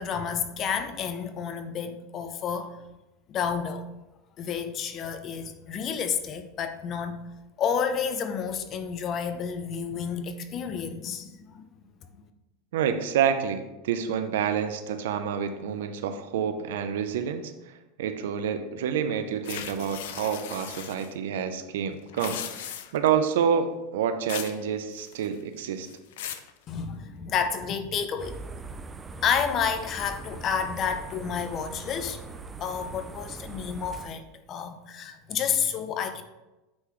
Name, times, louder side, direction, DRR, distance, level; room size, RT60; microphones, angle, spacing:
voice 1, 0.0-2.8 3.3-3.9 4.4-7.2 7.6-11.7 12.1-12.2 26.7-28.4 29.2-32.2 32.6-36.2, left 7 dB, 35° left, 0.6 m, -30 dB
voice 2, 12.7-25.9, right 8 dB, 85° right, 0.6 m, -28 dB
sound 1, 19.5-21.1 22.0-23.1 24.3-24.6 24.9-25.4 25.9-26.5, left 10 dB, 80° left, 0.5 m, -38 dB
sound 2, 28.2-34.1, right 3 dB, 15° right, 0.4 m, -41 dB
8.6 x 3.9 x 3.2 m
supercardioid pair, 135°, 0 cm